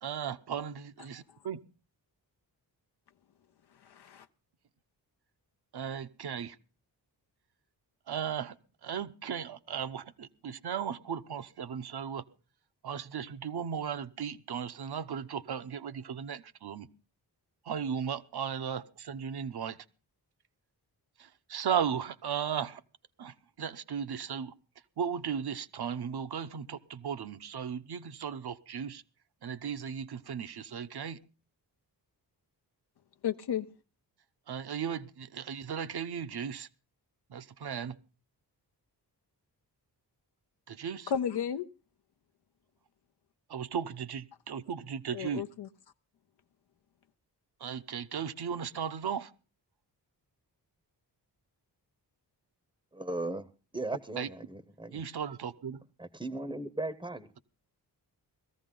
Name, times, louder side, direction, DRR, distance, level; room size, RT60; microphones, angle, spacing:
voice 1, 0.0-1.6 5.7-6.6 8.1-8.6 8.8-12.2 12.8-16.9 17.6-19.8 21.2-22.8 23.2-24.5 25.0-29.0 29.4-31.2 34.5-36.7 37.3-38.0 40.7-41.1 43.5-45.4 47.6-49.3 54.2-54.3 54.9-55.8, right 7 dB, 65° right, 0.9 m, -36 dB
voice 2, 3.7-4.3 33.2-33.7 41.1-41.7 45.1-45.7, left 8 dB, 70° left, 0.7 m, -33 dB
voice 3, 52.9-53.5 53.7-55.0 56.0-57.3, right 2 dB, 10° right, 0.8 m, -37 dB
18.0 x 14.5 x 3.8 m
wide cardioid pair, 105°, 42 cm